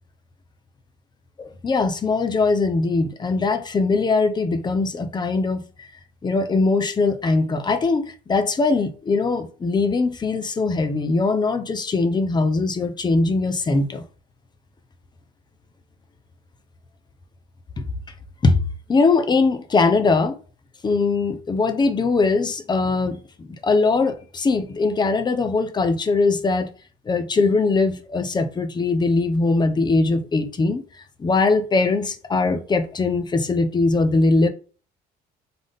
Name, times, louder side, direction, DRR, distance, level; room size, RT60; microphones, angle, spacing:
voice 1, 1.4-5.9 6.2-14.0 17.8-17.9 18.4-18.6 18.9-20.4 20.8-26.7 27.1-30.8 31.2-34.5, left 3 dB, 25° left, 0.7 m, -21 dB
3.8 x 3.6 x 3.6 m
cardioid pair, 110°, 17 cm